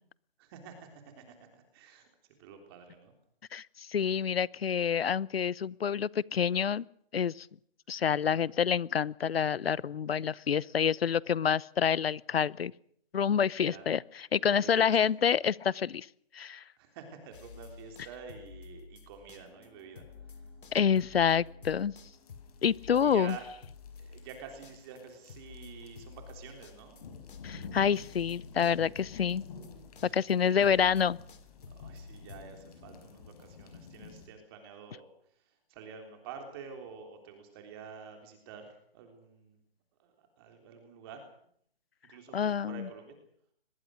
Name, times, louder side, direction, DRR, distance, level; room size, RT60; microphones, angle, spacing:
voice 1, 0.4-2.1 2.4-3.1 8.2-8.4 13.6-13.9 14.4-15.0 16.8-20.0 20.3-20.4 23.0-23.5 24.0-27.0 30.0-30.2 30.4-30.8 31.7-35.1 35.7-39.6 40.0-41.2 42.1-43.2, right 6 dB, 25° right, 4 dB, 3.5 m, -48 dB
voice 2, 3.5-6.8 7.1-7.5 7.9-12.7 13.1-16.1 16.3-16.6 20.7-21.9 22.6-23.4 27.4-29.4 30.1-31.2 42.3-42.9, left 7 dB, 75° left, 23 dB, 0.8 m, -28 dB
sound 1, 17.3-19.7 20.0-32.4, left 5 dB, 55° left, 3.6 m, -50 dB
sound 2, 19.5-27.6, left 6 dB, 15° left, 4.8 m, -66 dB
sound 3, 22.1-34.3, left 5 dB, 40° left, 5.5 m, -51 dB
23.0 x 21.5 x 6.4 m, 0.66 s
hypercardioid pair, 160°, 31 cm